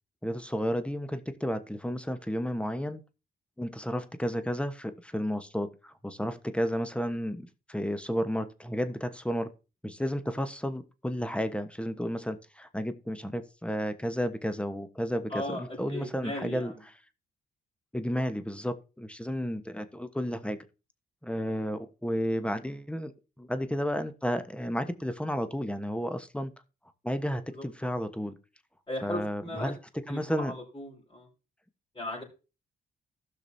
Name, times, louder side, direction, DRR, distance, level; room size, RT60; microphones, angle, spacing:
voice 1, 0.2-3.0 3.6-9.5 9.8-16.7 17.9-20.6 21.2-23.1 23.4-26.5 27.0-28.3 29.0-29.8 30.1-30.5, equal, 5° left, 1.1 m, -32 dB
voice 2, 15.3-16.8 27.4-27.7 28.9-29.7 30.1-31.3 31.9-32.2, left 1 dB, 20° left, 4.7 m, -37 dB
15.5 x 6.0 x 2.7 m
supercardioid pair, 60°, 20 cm